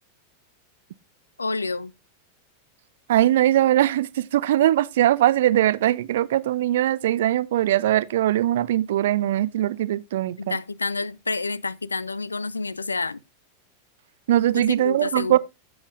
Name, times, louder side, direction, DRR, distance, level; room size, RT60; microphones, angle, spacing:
voice 1, 1.4-1.9 10.4-13.2 14.5-15.4, left 3 dB, 80° left, 0.4 m, -29 dB
voice 2, 3.1-10.6 14.3-15.4, right 13 dB, 55° right, 0.5 m, -21 dB
13.5 x 7.1 x 2.5 m
figure-of-eight pair, 90°, 0 cm